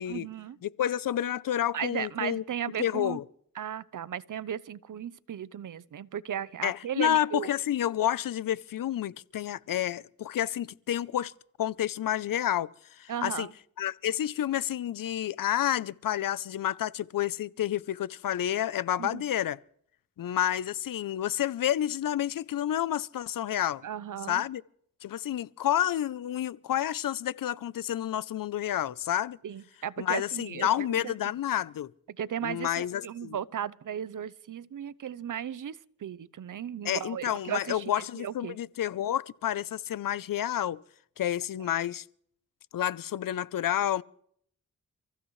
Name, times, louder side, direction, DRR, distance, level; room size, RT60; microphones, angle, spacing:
voice 1, 0.1-0.6 1.7-3.2 3.5-7.5 13.1-13.5 19.0-19.2 23.8-24.4 29.4-31.1 32.1-38.6, right 9 dB, 65° right, 0.8 m, -36 dB
voice 2, 0.6-2.4 2.8-3.2 6.6-11.3 11.6-12.7 13.0-13.5 13.8-19.6 20.2-23.8 24.3-24.6 25.0-29.4 30.0-31.9 32.4-33.4 36.8-40.8 41.2-42.0 42.7-44.0, left 11 dB, 70° left, 0.6 m, -29 dB
29.5 x 15.5 x 3.2 m
cardioid pair, 60°, 34 cm